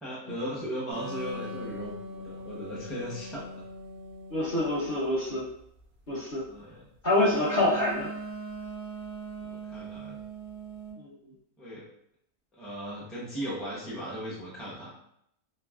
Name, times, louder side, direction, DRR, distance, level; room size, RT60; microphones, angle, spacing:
voice 1, 0.0-3.7 6.5-6.8 9.3-10.2 11.6-11.9 12.5-14.9, equal, ahead, -7 dB, 0.4 m, -37 dB
sound 1, 0.9-4.9 7.2-10.9, right 2 dB, 85° right, 0.4 m, -40 dB
voice 2, 4.3-5.5 6.1-6.4 7.0-8.1 11.0-11.1, left 1 dB, 40° left, -7 dB, 0.7 m, -26 dB
3.0 x 2.6 x 2.4 m, 0.73 s
omnidirectional pair, 1.6 m